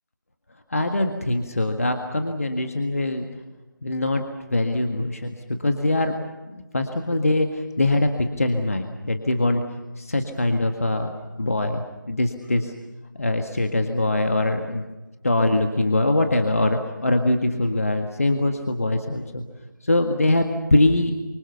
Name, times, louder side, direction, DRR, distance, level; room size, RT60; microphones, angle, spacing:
voice 1, 0.7-3.3 3.8-5.4 5.6-6.1 6.5-9.6 10.0-12.7 13.1-14.8 15.2-19.4 19.8-21.1, left 2 dB, 45° left, 5 dB, 1.8 m, -23 dB
27.5 x 25.0 x 6.9 m, 1.1 s
figure-of-eight pair, 165°, 11 cm